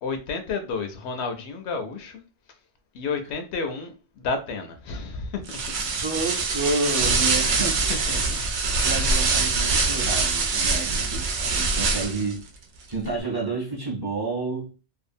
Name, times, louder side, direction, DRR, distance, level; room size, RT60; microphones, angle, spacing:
voice 1, 0.0-2.2 2.9-5.6 7.4-7.5 7.9-8.4 8.7-9.0 11.8-12.3, left 4 dB, 75° left, 0.8 m, -32 dB
sound 1, 5.5-12.3, right 4 dB, 85° right, 0.9 m, -24 dB
voice 2, 6.0-7.9 8.8-12.4 12.9-14.7, right 3 dB, 25° right, 0.7 m, -30 dB
2.7 x 2.3 x 2.6 m
omnidirectional pair, 1.1 m